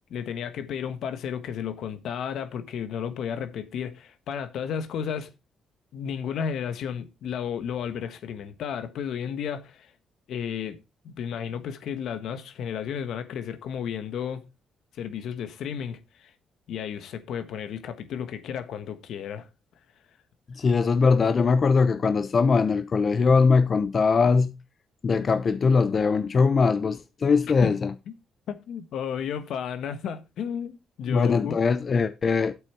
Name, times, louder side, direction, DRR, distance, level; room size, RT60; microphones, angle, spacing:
voice 1, 0.1-5.3 5.9-9.9 10.3-10.8 11.0-14.4 15.0-16.3 16.7-19.5 27.4-27.7 28.5-31.6, left 8 dB, 75° left, 1.4 m, -33 dB
voice 2, 20.6-24.5 25.0-27.9 31.1-32.5, left 4 dB, 45° left, 0.7 m, -21 dB
8.3 x 8.3 x 4.4 m
cardioid pair, 90°, 0 cm